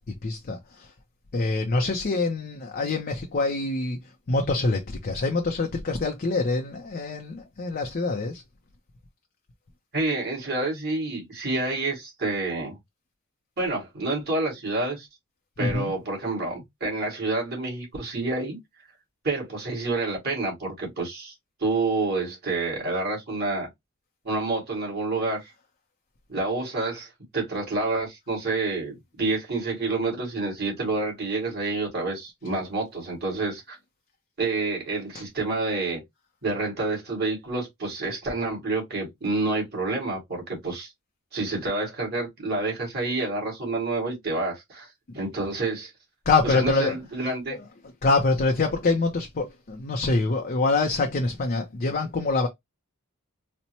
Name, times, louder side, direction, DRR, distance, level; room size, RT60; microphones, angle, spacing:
voice 1, 0.2-0.9 1.3-4.0 4.3-8.4 15.6-15.9 46.3-46.9 47.5-47.6 48.0-52.5, left 3 dB, 45° left, 0.5 m, -25 dB
voice 2, 9.9-12.8 13.6-15.1 15.6-18.6 19.2-21.3 21.6-23.7 24.2-25.5 26.3-33.8 34.4-36.0 36.4-40.9 41.3-45.9 46.4-47.6, right 2 dB, 50° right, 2.0 m, -28 dB
4.1 x 2.1 x 2.8 m
head